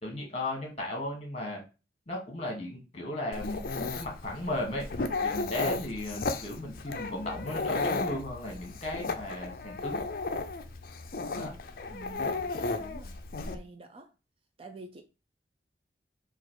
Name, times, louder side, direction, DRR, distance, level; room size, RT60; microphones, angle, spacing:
voice 1, 0.0-1.6 2.1-4.9 5.2-10.0 11.3-11.5, left 1 dB, 35° left, 1.5 m, -36 dB
Dog, 3.3-13.6, left 3 dB, 50° left, 0.5 m, -34 dB
voice 2, 11.9-13.2 13.5-14.1 14.6-15.0, right 3 dB, 30° right, 0.4 m, -48 dB
4.2 x 2.5 x 4.6 m
head